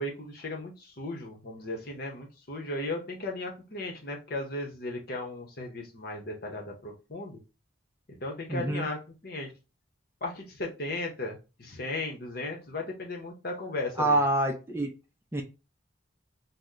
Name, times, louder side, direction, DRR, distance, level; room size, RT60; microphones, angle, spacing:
voice 1, 0.0-7.4 8.2-9.5 10.2-14.2, left 2 dB, 50° left, 1 dB, 0.9 m, -36 dB
voice 2, 8.5-8.9 14.0-14.9 15.3-15.4, right 1 dB, 10° right, 2 dB, 0.4 m, -26 dB
2.9 x 2.1 x 3.6 m, 0.29 s
head